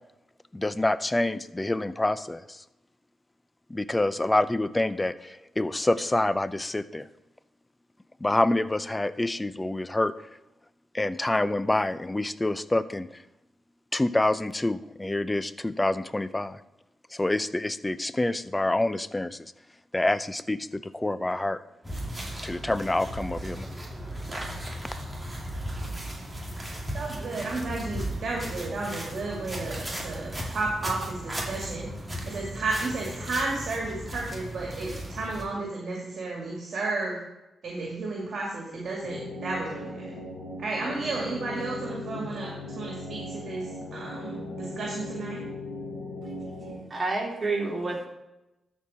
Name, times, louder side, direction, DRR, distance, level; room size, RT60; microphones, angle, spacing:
voice 1, 0.5-2.6 3.7-7.1 8.2-10.1 10.9-13.2 13.9-16.6 17.1-19.5 19.9-21.6 22.4-23.7, left 2 dB, 20° left, 15 dB, 0.6 m, -27 dB
sound 1, 21.8-35.4, equal, 15° right, 2.6 m, -36 dB
voice 2, 26.9-31.9 32.3-37.2 37.6-40.1 40.6-42.5 42.8-45.4, right 3 dB, 60° right, -2 dB, 2.3 m, -33 dB
sound 2, 39.0-46.8, left 1 dB, 90° left, 2.1 m, -38 dB
voice 3, 46.9-48.1, right 3 dB, 35° right, -1 dB, 3.2 m, -28 dB
13.0 x 4.6 x 4.3 m, 0.95 s
supercardioid pair, 50°, 0 cm